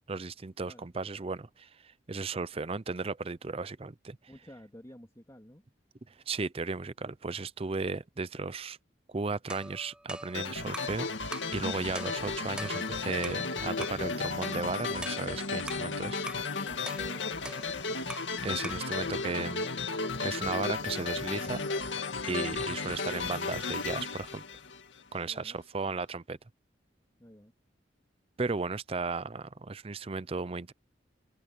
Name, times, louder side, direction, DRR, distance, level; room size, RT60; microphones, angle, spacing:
voice 1, 0.1-1.7 2.1-4.2 6.3-8.8 9.1-11.1 11.5-16.2 18.4-19.7 20.2-21.7 22.2-24.4 25.1-26.4 28.4-30.7, right 4 dB, 30° right, 0.6 m, -35 dB
voice 2, 4.3-5.6 16.5-17.4 25.2-25.6 27.2-27.5, equal, 15° left, 3.0 m, -51 dB
sound 1, 9.5-11.0 11.3-11.6 12.0-13.5 13.8-14.1 14.4-15.9 16.3-16.5 16.9-18.4 18.6-18.9, right 1 dB, 5° right, 3.1 m, -43 dB
sound 2, 10.3-25.2, left 4 dB, 80° left, 2.0 m, -34 dB
head